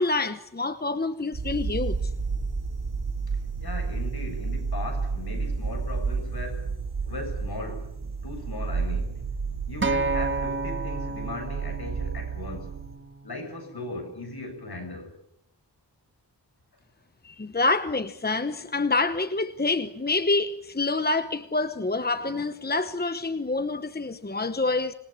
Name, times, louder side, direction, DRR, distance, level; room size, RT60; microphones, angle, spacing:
voice 1, 0.0-2.1 17.2-24.9, left 3 dB, 25° left, 1.0 m, -27 dB
sound 1, 1.3-13.0, right 4 dB, 60° right, 3.9 m, -31 dB
voice 2, 3.6-6.8 7.1-9.2 9.7-12.7 13.2-15.1, left 2 dB, 60° left, 6.7 m, -38 dB
Acoustic guitar, 9.8-14.1 14.9-15.0, right 3 dB, 30° right, 1.7 m, -32 dB
27.0 x 21.5 x 8.5 m
wide cardioid pair, 100°, 42 cm